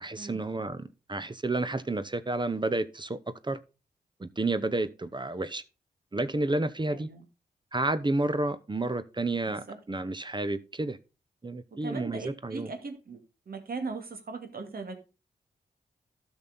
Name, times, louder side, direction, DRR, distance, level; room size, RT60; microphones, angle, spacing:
voice 1, 0.0-3.6 4.2-5.6 6.1-7.1 7.7-11.0 11.4-12.7, right 2 dB, 30° right, 0.9 m, -30 dB
voice 2, 6.9-7.2 9.5-9.8 11.8-13.2 13.5-15.0, right 4 dB, 65° right, 2.3 m, -39 dB
12.0 x 6.2 x 4.0 m
cardioid pair, 45°, 17 cm